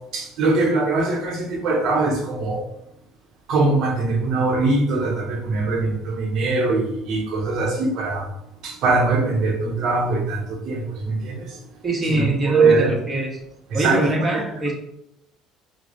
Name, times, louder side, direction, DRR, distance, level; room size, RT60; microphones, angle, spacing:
voice 1, 0.1-2.6 3.5-8.3 8.6-11.5 12.1-12.9 13.7-14.4, right 3 dB, 60° right, 1 dB, 0.8 m, -22 dB
voice 2, 11.8-13.4 13.7-14.7, right 2 dB, 25° right, -2 dB, 1.1 m, -23 dB
4.6 x 2.1 x 2.5 m, 0.80 s
supercardioid pair, 95°, 0 cm